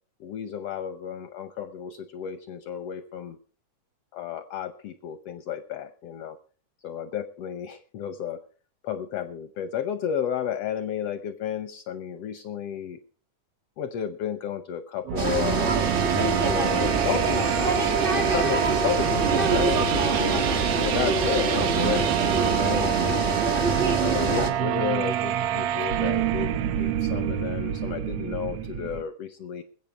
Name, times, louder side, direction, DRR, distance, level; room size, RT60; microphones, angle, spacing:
voice 1, 0.2-3.4 4.1-6.4 6.8-8.4 8.8-13.0 13.8-17.7 18.1-23.4 24.0-29.6, left 9 dB, 75° left, 11 dB, 1.4 m, -32 dB
sound 1, 15.0-29.0, right 10 dB, 80° right, 1.3 m, -27 dB
sound 2, 15.2-24.5, right 3 dB, 45° right, 0.7 m, -25 dB
21.0 x 8.2 x 4.6 m, 0.42 s
omnidirectional pair, 3.6 m